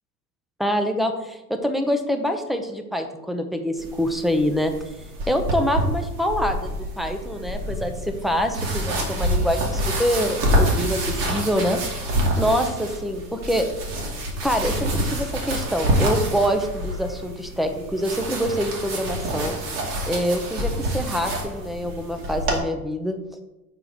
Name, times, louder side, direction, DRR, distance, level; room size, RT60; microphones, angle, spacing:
voice 1, 0.6-4.7 5.3-11.8 12.4-13.7 14.4-19.6 20.1-23.2, equal, ahead, 6 dB, 0.8 m, -25 dB
sound 1, 3.8-22.6, equal, 55° right, 2.4 m, -27 dB
6.0 x 4.7 x 5.2 m, 0.96 s
hypercardioid pair, 85°, 49 cm